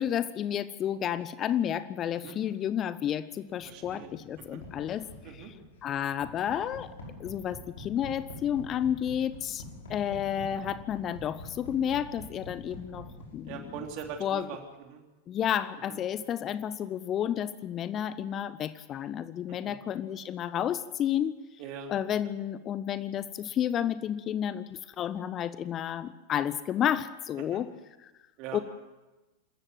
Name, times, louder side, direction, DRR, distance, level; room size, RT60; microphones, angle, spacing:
voice 1, 0.0-5.1 5.8-6.9 7.2-9.6 9.9-13.6 14.2-14.5 15.3-21.4 21.9-27.7 28.5-28.6, left 10 dB, 30° left, 16 dB, 0.8 m, -31 dB
sound 1, 3.6-14.4, left 2 dB, 65° left, 5.8 m, -46 dB
voice 2, 3.6-4.1 4.4-4.6 5.2-5.5 13.4-15.0 15.9-16.0 19.5-19.7 21.6-21.9 27.4-27.6 28.4-28.6, right 7 dB, 40° right, 3 dB, 3.4 m, -42 dB
26.5 x 14.0 x 7.7 m, 1.1 s
figure-of-eight pair, 90°, 0 cm